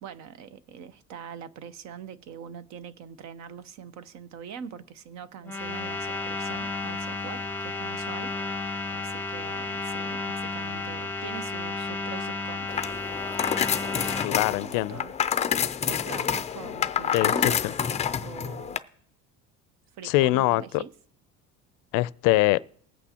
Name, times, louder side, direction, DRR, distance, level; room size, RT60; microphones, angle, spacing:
voice 1, 0.0-8.3 8.9-12.9 13.9-15.2 15.8-17.6 18.2-18.8 19.9-20.9, right 7 dB, 60° right, 0.8 m, -43 dB
sound 1, 5.4-14.3, left 3 dB, 5° left, 0.8 m, -32 dB
sound 2, 12.7-18.8, left 8 dB, 20° left, 0.4 m, -28 dB
voice 2, 14.2-15.0 17.1-17.7 20.0-20.8 21.9-22.6, left 19 dB, 80° left, 0.5 m, -23 dB
20.0 x 8.4 x 2.9 m
cardioid pair, 125°, 31 cm